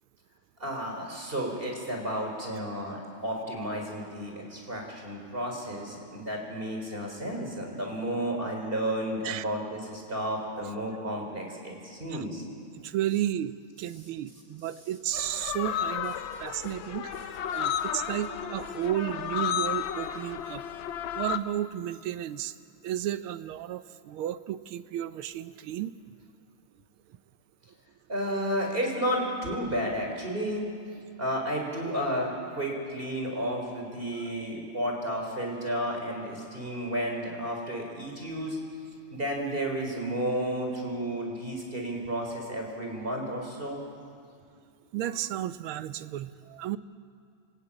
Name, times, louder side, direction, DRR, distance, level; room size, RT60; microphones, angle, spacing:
voice 1, 0.6-12.4 28.1-30.7 31.2-38.6 39.1-43.8, equal, 25° right, 1 dB, 4.5 m, -32 dB
voice 2, 12.8-20.6 21.1-22.5 22.8-25.9 44.9-46.8, right 12 dB, 80° right, 13 dB, 1.6 m, -33 dB
sound 1, 15.1-21.4, left 9 dB, 70° left, 1.6 m, -33 dB
28.5 x 16.0 x 8.9 m, 2.4 s
omnidirectional pair, 2.4 m